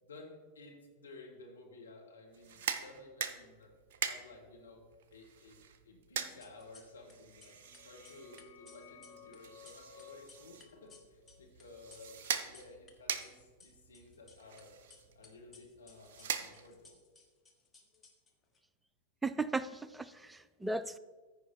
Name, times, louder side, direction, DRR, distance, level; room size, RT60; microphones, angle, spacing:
voice 1, 0.0-3.7 4.0-4.8 5.1-5.6 5.8-14.7 15.1-17.0, left 2 dB, 70° left, 0 dB, 1.6 m, -55 dB
sound 1, 2.3-17.0, right 7 dB, 55° right, 0.6 m, -43 dB
sound 2, 6.2-7.1 7.4-12.9 13.2-14.6 14.9-18.6, left 4 dB, 20° left, 1.2 m, -60 dB
sound 3, 7.3-12.7, left 7 dB, 50° left, 1.1 m, -59 dB
voice 2, 19.2-21.0, right 3 dB, 10° right, 15 dB, 0.4 m, -36 dB
14.0 x 5.0 x 4.3 m, 1.4 s
figure-of-eight pair, 90°, 0 cm